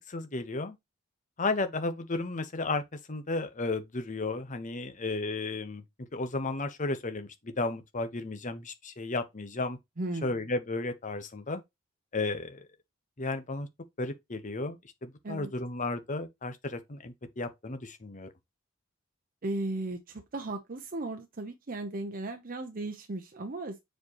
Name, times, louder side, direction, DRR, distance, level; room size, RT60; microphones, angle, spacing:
voice 1, 0.1-0.8 1.4-2.8 3.1-5.8 6.1-9.8 10.2-11.6 12.1-12.7 13.2-13.7 14.0-18.3, left 3 dB, 40° left, 1.0 m, -33 dB
voice 2, 10.0-10.5 15.2-15.5 19.4-23.8, right 2 dB, 45° right, 0.8 m, -36 dB
7.2 x 4.5 x 3.0 m
head